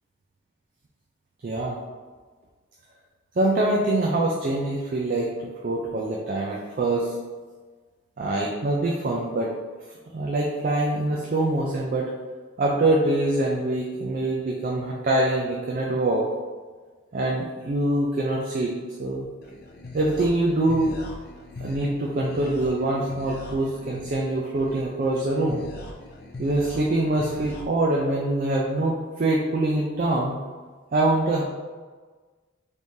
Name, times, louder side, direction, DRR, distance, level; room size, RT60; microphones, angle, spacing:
voice 1, 1.4-1.8 3.4-5.3 5.6-7.2 8.2-9.5 10.1-12.1 12.6-16.3 17.1-18.7 19.0-19.3 19.9-21.0 21.6-25.6 26.4-30.4 30.9-31.4, right 2 dB, 40° right, -2 dB, 0.3 m, -24 dB
sound 1, 19.4-27.6, left 2 dB, 50° left, 0.5 m, -40 dB
3.5 x 3.1 x 2.7 m, 1.4 s
head